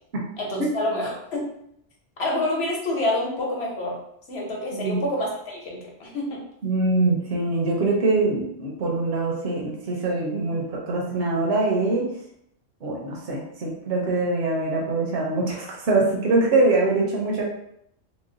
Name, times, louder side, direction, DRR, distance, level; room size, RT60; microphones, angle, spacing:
voice 1, 0.4-1.5 2.2-4.0 4.3-6.4, left 1 dB, 60° left, -2 dB, 1.1 m, -27 dB
voice 2, 4.7-5.0 6.6-12.1 12.8-17.4, right 2 dB, 60° right, -3 dB, 0.9 m, -23 dB
3.0 x 2.1 x 3.7 m, 0.74 s
omnidirectional pair, 1.3 m